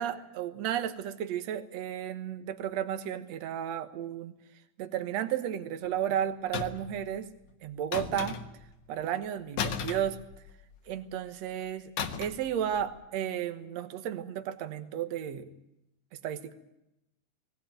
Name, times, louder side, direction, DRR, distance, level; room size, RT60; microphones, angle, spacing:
voice 1, 0.0-4.3 4.8-7.3 7.6-8.4 8.9-10.2 10.9-11.9 12.2-15.5 16.2-16.5, right 10 dB, 60° right, 9 dB, 2.2 m, -33 dB
sound 1, 6.5-7.0 7.9-8.7 9.6-10.7 12.0-12.5 12.7-13.0, left 7 dB, 65° left, 2.6 m, -35 dB
19.0 x 18.5 x 9.2 m, 0.86 s
omnidirectional pair, 3.9 m